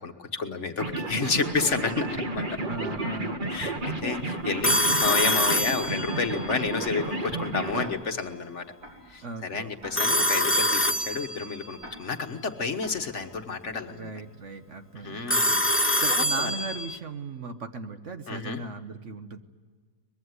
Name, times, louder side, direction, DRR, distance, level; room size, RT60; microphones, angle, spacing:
voice 1, 0.0-2.6 3.5-8.7 9.1-14.1 14.9-16.5 18.3-18.6, left 4 dB, 50° left, 6 dB, 1.6 m, -31 dB
sound 1, 0.8-7.9, right 2 dB, 30° right, 1.5 m, -32 dB
Tick-tock, 1.8-1.9 2.8-2.9 3.8-3.9 4.8-4.9 5.8-5.9 6.8-6.9 7.8-7.9 8.8-8.9 9.8-9.9 10.8-10.9 11.8-11.9 12.8-12.9, right 1 dB, 70° right, 6.8 m, -43 dB
voice 2, 2.7-3.9 9.2-9.7 13.9-15.3 16.0-19.4, right 3 dB, 50° right, 8 dB, 1.3 m, -37 dB
Telephone, 4.6-6.4 10.0-11.6 15.3-17.0, equal, 10° left, 0.6 m, -25 dB
23.0 x 21.5 x 9.6 m, 1.5 s
omnidirectional pair, 1.7 m